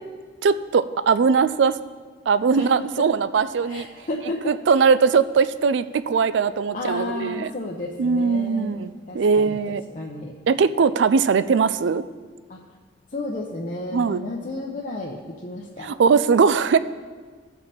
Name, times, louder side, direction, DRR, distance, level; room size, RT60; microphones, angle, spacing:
voice 1, 0.4-1.8 2.3-3.9 4.5-7.5 8.0-9.8 10.5-12.0 13.9-14.2 15.8-16.8, right 5 dB, 65° right, 14 dB, 0.4 m, -20 dB
voice 2, 2.6-3.0 3.7-4.6 6.7-10.3 12.5-12.6 13.1-15.9, left 2 dB, 40° left, -3 dB, 0.8 m, -32 dB
16.0 x 5.4 x 4.2 m, 1.5 s
head